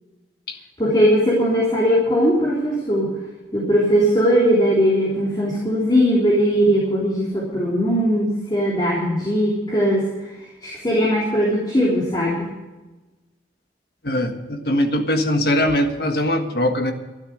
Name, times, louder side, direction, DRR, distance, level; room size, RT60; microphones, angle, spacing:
voice 1, 0.8-3.1 3.5-10.0 10.6-12.5, equal, 25° left, -5 dB, 3.4 m, -19 dB
voice 2, 14.0-16.9, left 1 dB, 55° left, 5 dB, 1.6 m, -21 dB
13.0 x 12.5 x 6.5 m, 1.1 s
head